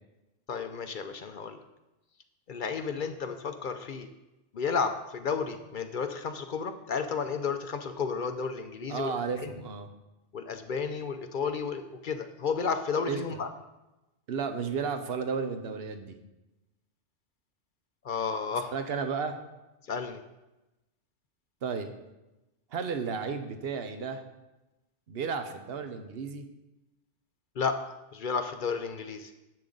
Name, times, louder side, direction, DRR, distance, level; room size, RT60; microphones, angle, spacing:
voice 1, 0.5-1.6 2.5-4.1 4.5-9.1 9.4-9.5 10.3-13.5 18.0-18.7 19.9-20.2 27.6-29.3, left 5 dB, 55° left, 8 dB, 0.6 m, -32 dB
voice 2, 8.9-9.9 13.1-13.4 14.3-16.1 18.7-19.4 21.6-21.9 22.7-24.2 25.1-26.4, right 5 dB, 55° right, 7 dB, 1.1 m, -33 dB
10.5 x 7.8 x 3.9 m, 1.0 s
omnidirectional pair, 1.3 m